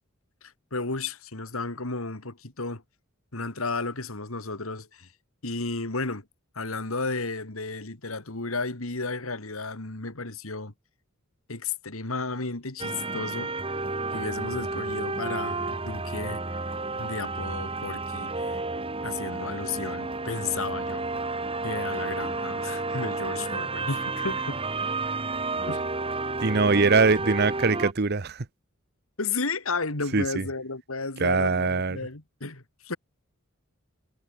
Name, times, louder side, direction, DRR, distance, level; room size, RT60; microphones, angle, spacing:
voice 1, 0.4-2.8 3.3-5.1 5.4-6.3 6.5-10.7 11.5-13.8 14.1-16.6 17.0-18.6 19.0-21.1 21.6-24.6 25.7-25.8 29.2-33.0, left 3 dB, 90° left, 2.7 m, -33 dB
sound 1, 12.8-27.9, right 3 dB, 25° right, 3.5 m, -31 dB
voice 2, 26.4-28.5 30.1-30.4 31.2-32.0, right 4 dB, 50° right, 0.9 m, -22 dB
head